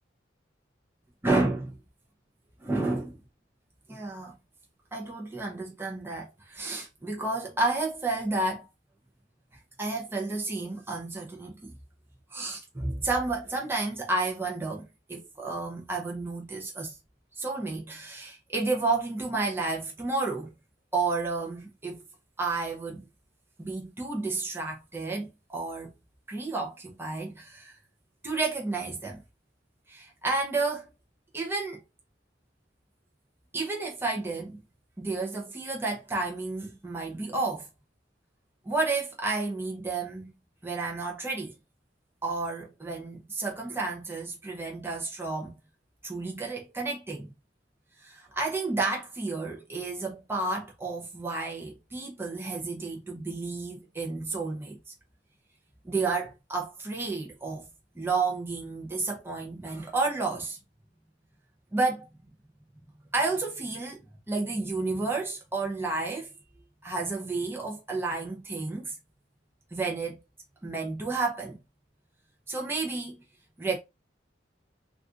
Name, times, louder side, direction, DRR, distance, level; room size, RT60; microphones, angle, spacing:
voice 1, 1.2-1.8 2.6-3.2 3.9-4.4 4.9-8.7 9.8-11.7 12.3-17.0 17.4-20.5 20.9-22.0 22.4-23.0 23.6-25.9 26.3-27.7 28.2-29.2 29.9-30.9 31.3-31.8 33.5-34.6 35.0-37.7 38.7-40.3 40.6-41.5 42.2-45.6 46.0-47.3 48.0-54.8 55.8-57.7 57.9-60.6 61.7-62.1 63.1-66.3 66.8-68.9 69.7-70.2 70.6-71.6 72.5-73.2 73.6-73.8, right 3 dB, 15° right, 0.6 m, -31 dB
2.5 x 2.4 x 3.6 m
head